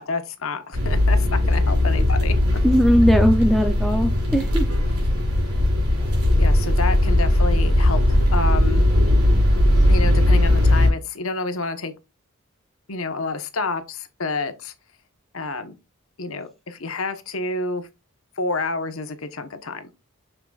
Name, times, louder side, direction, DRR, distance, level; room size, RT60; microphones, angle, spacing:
voice 1, 0.0-2.6 6.4-8.9 9.9-11.9 12.9-14.7 15.3-15.7 16.2-17.9 18.4-19.9, left 3 dB, 70° left, 1.1 m, -29 dB
sound 1, 0.7-10.9, left 1 dB, 85° right, 4.3 m, -18 dB
voice 2, 2.6-4.7, equal, ahead, 0.5 m, -19 dB
6.8 x 5.9 x 2.4 m
head